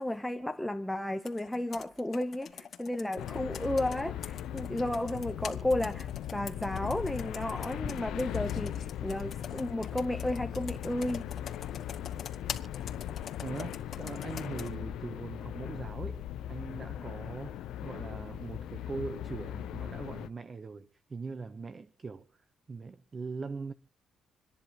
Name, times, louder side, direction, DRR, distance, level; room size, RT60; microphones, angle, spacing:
voice 1, 0.0-11.3, left 1 dB, 5° left, 0.8 m, -33 dB
Computer keyboard, 1.2-14.7, left 7 dB, 55° left, 2.2 m, -45 dB
sound 1, 3.2-20.3, left 11 dB, 85° left, 0.7 m, -39 dB
voice 2, 13.4-16.2 16.5-23.7, right 4 dB, 35° right, 0.9 m, -41 dB
27.5 x 10.5 x 3.0 m
cardioid pair, 90°, 0 cm